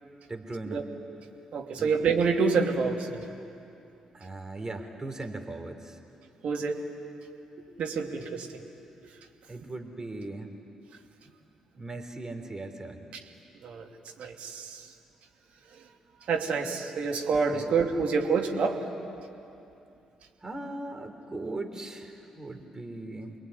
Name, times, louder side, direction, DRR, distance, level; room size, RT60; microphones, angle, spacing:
voice 1, 0.3-0.8 1.7-1.9 4.1-6.0 9.5-10.5 11.8-13.0 17.5-17.7 20.4-23.4, right 2 dB, 25° right, 5 dB, 3.9 m, -38 dB
voice 2, 1.5-3.2 6.4-6.8 7.8-8.5 9.6-9.7 13.6-13.9 14.2-14.8 16.3-18.8, right 5 dB, 60° right, 2 dB, 2.7 m, -27 dB
28.5 x 21.0 x 9.9 m, 2.7 s
figure-of-eight pair, 40°, 2 cm